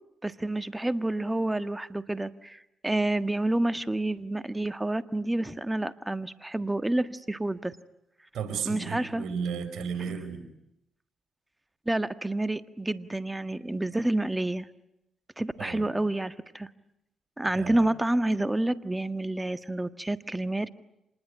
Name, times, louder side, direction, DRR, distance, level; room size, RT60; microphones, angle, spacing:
voice 1, 0.2-7.8 8.7-9.3 11.8-14.7 15.4-16.7 17.4-20.7, right 1 dB, 15° right, 10 dB, 1.6 m, -29 dB
voice 2, 8.3-10.5 15.6-15.9 17.4-17.9, right 6 dB, 70° right, 7 dB, 5.1 m, -34 dB
27.0 x 20.5 x 10.0 m, 0.86 s
supercardioid pair, 50°, 0 cm